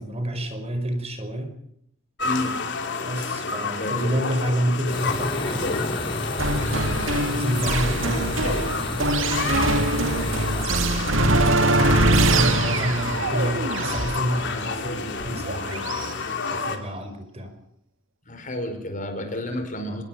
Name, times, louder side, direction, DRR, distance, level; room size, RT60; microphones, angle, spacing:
voice 1, 0.0-1.5 3.0-5.9 6.4-8.9 9.4-9.8 10.5-15.9 16.5-17.5, equal, 30° right, 6 dB, 5.2 m, -29 dB
sound 1, 2.2-16.8, left 4 dB, 60° left, 3.4 m, -30 dB
voice 2, 2.2-2.6 3.8-4.1 18.2-20.0, left 1 dB, 40° left, 7 dB, 4.9 m, -30 dB
sound 2, 4.9-10.7, left 1 dB, 25° left, 1.6 m, -31 dB
sound 3, 6.4-16.1, right 2 dB, 70° right, 2.1 m, -23 dB
26.5 x 20.0 x 5.8 m, 0.73 s
head